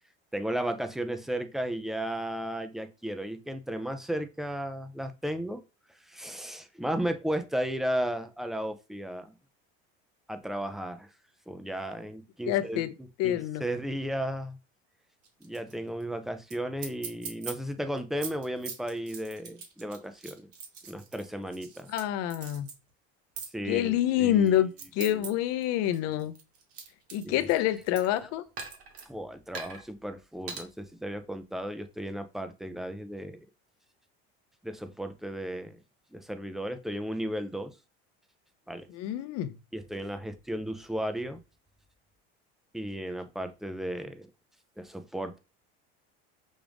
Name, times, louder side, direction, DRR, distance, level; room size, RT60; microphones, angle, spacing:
voice 1, 0.3-5.6 6.1-9.3 10.3-11.1 11.5-14.6 15.4-20.5 20.8-21.9 23.5-25.4 27.2-28.3 29.1-33.4 34.6-35.8 36.1-37.7 38.7-38.9 39.7-41.4 42.7-44.3 44.8-45.4, right 1 dB, ahead, 0.4 m, -35 dB
voice 2, 12.5-12.9 13.2-13.6 21.9-22.7 23.7-26.4 27.1-28.4 38.9-39.5, left 12 dB, 60° left, 0.6 m, -27 dB
sound 1, 15.2-15.7 16.0-16.1 16.5-16.6 16.8-17.5 18.0-22.0 22.3-22.7 23.4-23.5 24.2-25.3 25.6-28.2 28.6-29.1 29.5-29.8 30.5-30.6, right 5 dB, 50° right, 1.5 m, -41 dB
6.1 x 2.5 x 3.4 m
supercardioid pair, 130°, 29 cm